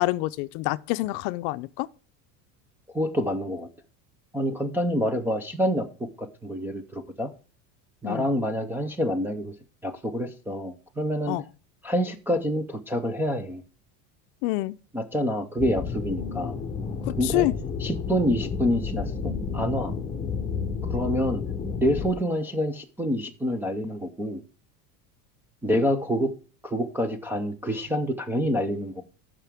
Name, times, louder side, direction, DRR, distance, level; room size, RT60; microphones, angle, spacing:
voice 1, 0.0-1.9 8.0-8.3 11.3-11.4 14.4-14.8 17.2-17.5, left 18 dB, 55° left, 0.5 m, -26 dB
voice 2, 2.9-3.7 4.3-7.3 8.0-9.5 9.8-11.4 11.8-13.6 14.9-16.5 17.2-17.5 17.8-19.9 20.8-21.4 21.8-24.4 25.6-26.3 26.6-29.0, equal, 5° right, 0.3 m, -27 dB
sound 1, 15.6-22.1, left 5 dB, 15° left, 0.8 m, -31 dB
13.5 x 5.9 x 3.5 m
cardioid pair, 170°, 39 cm